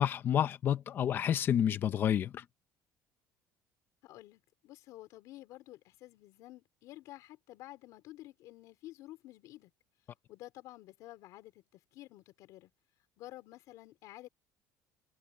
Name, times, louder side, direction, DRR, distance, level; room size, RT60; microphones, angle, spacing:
voice 1, 0.0-2.4, left 9 dB, 30° left, 0.7 m, -29 dB
voice 2, 4.0-9.7 10.3-12.7 13.2-14.3, left 16 dB, 55° left, 4.5 m, -51 dB
cardioid pair, 180°, 7 cm